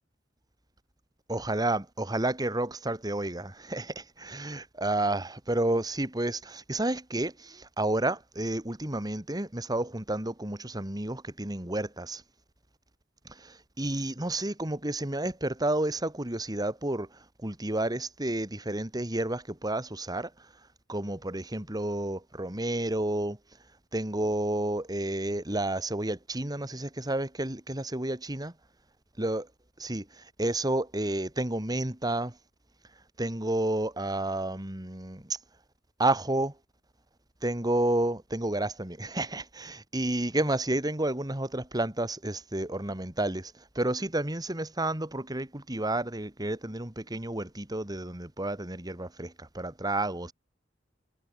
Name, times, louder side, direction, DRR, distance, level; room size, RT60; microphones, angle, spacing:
voice 1, 1.3-12.2 13.3-17.1 17.4-20.3 20.9-23.4 23.9-28.5 29.2-29.4 29.8-32.4 33.2-35.4 36.0-36.5 37.4-50.3, right 1 dB, 20° right, 2.4 m, -31 dB
head